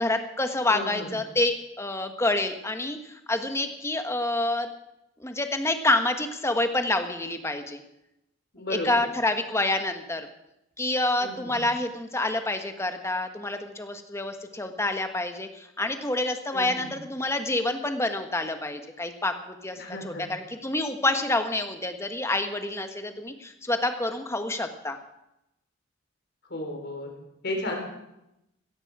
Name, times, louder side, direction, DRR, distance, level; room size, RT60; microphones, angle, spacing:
voice 1, 0.0-4.7 5.2-7.8 8.7-10.3 10.8-25.0, left 2 dB, 15° left, 7 dB, 1.2 m, -28 dB
voice 2, 0.7-1.1 8.5-9.0 11.2-11.6 16.5-16.9 19.8-20.2 26.5-27.1 27.4-27.7, left 1 dB, 55° left, 1 dB, 4.0 m, -34 dB
16.5 x 14.5 x 4.8 m, 0.87 s
head